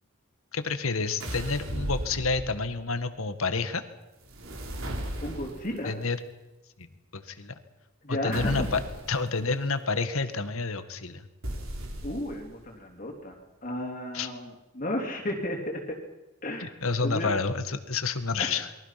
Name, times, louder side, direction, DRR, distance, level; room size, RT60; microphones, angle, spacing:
voice 1, 0.5-3.8 5.8-6.2 6.8-6.9 7.1-7.5 8.1-8.8 9.1-11.3 14.1-14.3 16.6-18.7, left 4 dB, 70° left, 10 dB, 1.8 m, -29 dB
sound 1, 1.2-2.8 4.2-5.8 8.3-9.2 11.4-12.5, equal, 65° right, 4.5 m, -35 dB
voice 2, 5.2-6.0 8.0-8.7 12.0-13.4 13.6-16.0 16.4-17.3 18.4-18.6, left 1 dB, 35° left, 0 dB, 3.3 m, -33 dB
28.5 x 22.5 x 5.9 m, 1.0 s
head